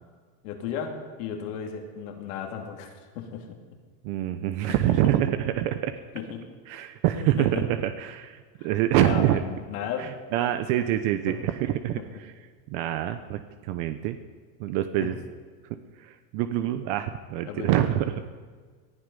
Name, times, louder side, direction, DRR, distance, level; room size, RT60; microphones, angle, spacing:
voice 1, 0.4-3.6 4.7-5.1 6.1-6.5 7.2-7.6 8.6-8.7 9.0-10.1 10.4-10.5 11.3-11.4 12.0-12.1 15.0-15.1 17.4-18.0, left 7 dB, 75° left, 2 dB, 2.9 m, -35 dB
voice 2, 4.0-5.9 6.7-9.4 10.0-12.3 12.7-14.2 14.6-15.2 16.0-18.1, right 12 dB, 65° right, 9 dB, 1.0 m, -26 dB
19.0 x 12.0 x 5.5 m, 1.5 s
supercardioid pair, 110°, 41 cm